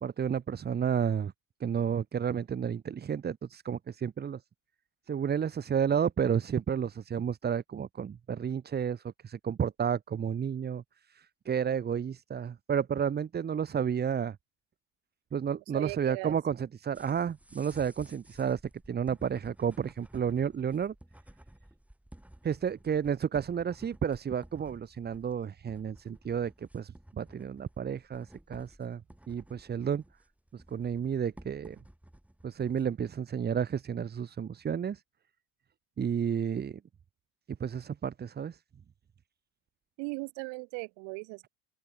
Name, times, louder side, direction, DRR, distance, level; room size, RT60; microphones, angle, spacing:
voice 1, 0.0-1.3 1.6-4.4 5.1-10.8 11.1-14.4 15.3-18.6 18.9-20.9 22.4-29.0 29.3-30.0 30.5-31.8 32.4-35.0 36.0-36.8 37.6-38.6, right 7 dB, 20° right, 1.0 m, -31 dB
voice 2, 15.7-16.4 40.0-41.5, right 32 dB, 70° right, 1.5 m, -38 dB
sound 1, 16.9-33.0, right 1 dB, 5° right, 4.3 m, -55 dB
open air
supercardioid pair, 120°, 44 cm